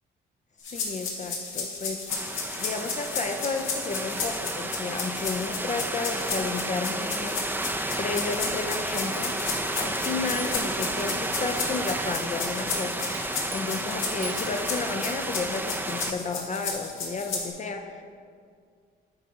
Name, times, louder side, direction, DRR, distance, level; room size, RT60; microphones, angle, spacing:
sound 1, 0.6-17.5, left 4 dB, 85° left, 1.5 m, -33 dB
voice 1, 0.7-2.1 2.6-7.5 8.0-9.4 9.8-13.1 13.5-18.0, left 4 dB, 35° left, 5 dB, 0.5 m, -32 dB
sound 2, 2.1-16.1, right 1 dB, 10° right, 0.5 m, -32 dB
sound 3, 9.1-13.8 14.2-14.8, right 2 dB, 85° right, 1.4 m, -44 dB
8.7 x 4.1 x 4.9 m, 2.1 s
cardioid pair, 90°, 20 cm